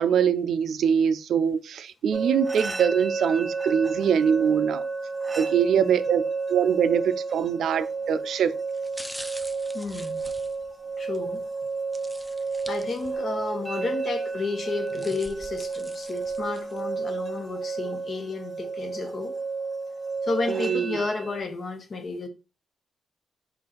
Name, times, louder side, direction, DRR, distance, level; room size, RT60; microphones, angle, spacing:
voice 1, 0.0-4.8 5.4-6.2 6.5-8.5 20.5-21.0, right 7 dB, 75° right, 0.4 m, -23 dB
sound 1, 2.1-21.4, right 4 dB, 25° right, 1.0 m, -32 dB
sound 2, 7.7-8.0 8.7-11.2 11.9-13.4 13.8-13.9 14.6-16.8 17.3-17.4, equal, ahead, 0.5 m, -44 dB
voice 2, 9.7-10.3 11.0-11.4 12.7-19.4 20.2-22.3, left 3 dB, 50° left, 0.9 m, -32 dB
4.5 x 2.5 x 3.8 m
cardioid pair, 80°, 0 cm